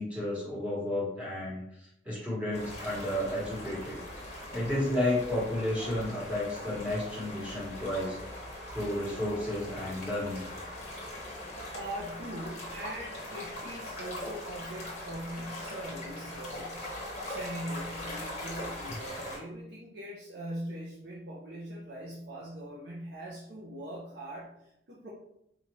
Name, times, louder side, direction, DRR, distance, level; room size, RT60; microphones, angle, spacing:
voice 1, 0.0-1.6 2.0-4.0 4.5-8.2 8.7-10.4, left 1 dB, 5° right, -6 dB, 1.2 m, -32 dB
sound 1, 2.5-19.4, left 1 dB, 35° left, 1.0 m, -41 dB
voice 2, 11.7-16.9 17.2-25.1, right 1 dB, 65° right, -5 dB, 0.6 m, -41 dB
4.3 x 2.4 x 3.0 m, 0.78 s
head